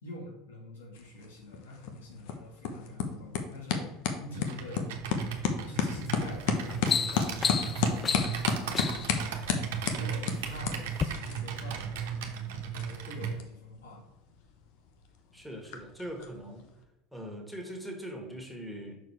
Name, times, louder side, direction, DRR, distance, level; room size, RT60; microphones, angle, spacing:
voice 1, 0.0-3.9 4.2-4.9 5.7-9.4 9.8-14.1, left 2 dB, 85° left, -2 dB, 2.2 m, -45 dB
sound 1, 0.9-16.8, left 6 dB, 65° left, 1.0 m, -35 dB
Computer keyboard, 4.3-13.4, right 7 dB, 75° right, 1.0 m, -36 dB
sound 2, 5.9-6.2 6.6-9.2 10.0-10.5 10.9-11.1, left 6 dB, 30° left, 0.3 m, -32 dB
voice 2, 15.3-16.6 17.1-19.0, equal, ahead, 1 dB, 1.9 m, -41 dB
6.2 x 4.7 x 4.7 m, 0.98 s
hypercardioid pair, 85°, 0 cm